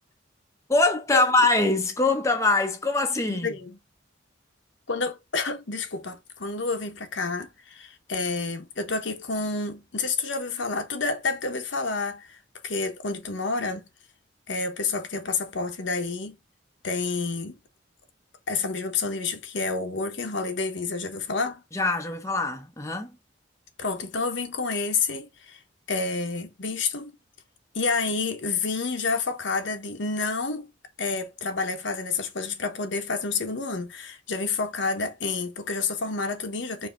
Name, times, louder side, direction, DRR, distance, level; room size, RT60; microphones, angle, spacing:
voice 1, 0.7-3.6 21.7-23.1, left 2 dB, 15° left, 0.6 m, -23 dB
voice 2, 3.3-3.8 4.9-13.9 14.5-16.4 16.8-17.6 18.5-21.6 23.8-25.6 25.9-27.2 27.7-30.7 31.0-36.9, left 4 dB, 75° left, 1.0 m, -29 dB
4.9 x 2.7 x 3.7 m
head